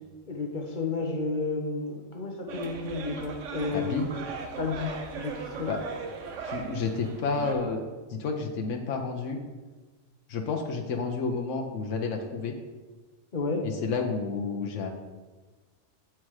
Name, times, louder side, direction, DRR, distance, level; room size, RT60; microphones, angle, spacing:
voice 1, 0.3-4.1 4.6-5.7 13.3-13.7, left 3 dB, 45° left, 2 dB, 1.0 m, -31 dB
sound 1, 2.5-7.5, right 5 dB, 85° right, 1.1 m, -38 dB
voice 2, 3.7-4.0 5.7-5.8 6.4-7.8 8.1-9.4 10.3-12.5 13.6-14.9, left 4 dB, 85° left, 2 dB, 1.1 m, -30 dB
7.4 x 4.6 x 4.7 m, 1.3 s
omnidirectional pair, 1.2 m